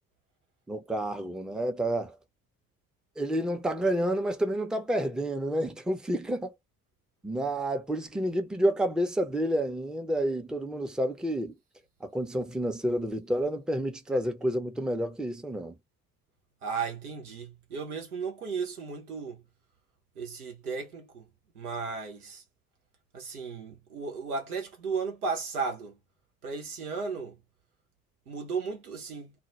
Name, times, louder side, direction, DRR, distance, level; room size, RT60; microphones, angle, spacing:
voice 1, 0.7-2.2 3.2-6.5 7.2-11.5 12.0-15.8, right 1 dB, ahead, 0.5 m, -29 dB
voice 2, 16.6-19.4 20.2-21.3 21.5-22.4 23.1-26.0 26.4-27.4 28.3-29.3, right 5 dB, 85° right, 0.7 m, -35 dB
2.1 x 2.1 x 2.9 m
figure-of-eight pair, 45°, 44 cm